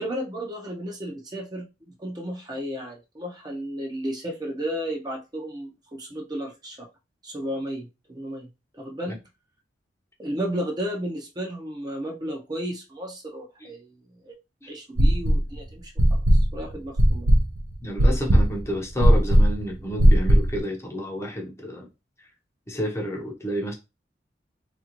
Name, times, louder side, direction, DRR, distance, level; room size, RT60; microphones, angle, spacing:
voice 1, 0.0-6.9 7.2-8.5 8.7-9.2 10.2-14.3 14.7-17.3, equal, 25° right, 0.6 m, -33 dB
sound 1, 15.0-15.5 16.0-20.6, right 1 dB, 80° right, 0.6 m, -17 dB
voice 2, 17.8-21.9 22.7-23.7, equal, 15° left, 0.7 m, -30 dB
3.4 x 2.6 x 2.9 m
head